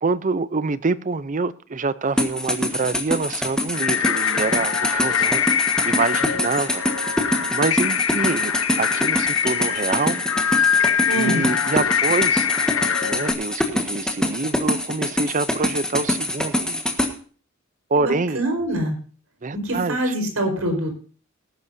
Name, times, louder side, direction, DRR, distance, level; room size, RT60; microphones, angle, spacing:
voice 1, 0.0-6.8 7.1-8.5 8.8-10.2 11.1-12.5 13.0-16.9 17.9-18.4 19.4-20.1, right 4 dB, 35° right, 0.6 m, -26 dB
sound 1, 2.2-17.1, left 1 dB, 5° left, 1.4 m, -24 dB
sound 2, 3.7-13.3, left 8 dB, 75° left, 1.0 m, -23 dB
voice 2, 11.1-11.5 18.0-19.0 19.5-20.9, right 1 dB, 80° right, 4.5 m, -25 dB
19.5 x 11.0 x 2.7 m
head